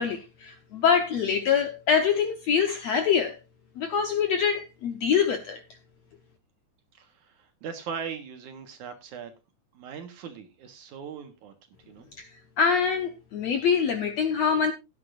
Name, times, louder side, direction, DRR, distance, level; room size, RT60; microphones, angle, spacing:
voice 1, 0.0-3.4 3.8-5.6 12.2-12.3 12.6-14.7, left 6 dB, 65° left, 1.7 m, -24 dB
voice 2, 6.9-9.3 9.7-11.5 11.9-12.1, right 6 dB, 65° right, 2.5 m, -39 dB
16.5 x 9.9 x 2.5 m
omnidirectional pair, 4.3 m